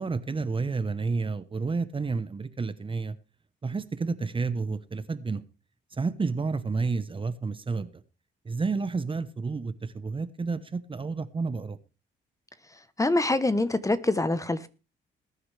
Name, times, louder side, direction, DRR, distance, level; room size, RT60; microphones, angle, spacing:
voice 1, 0.0-3.2 3.6-5.4 6.0-7.9 8.4-11.8, right 4 dB, 25° right, 1.0 m, -30 dB
voice 2, 13.0-14.7, left 2 dB, 15° left, 1.0 m, -25 dB
20.0 x 9.7 x 3.4 m
cardioid pair, 90°, 20 cm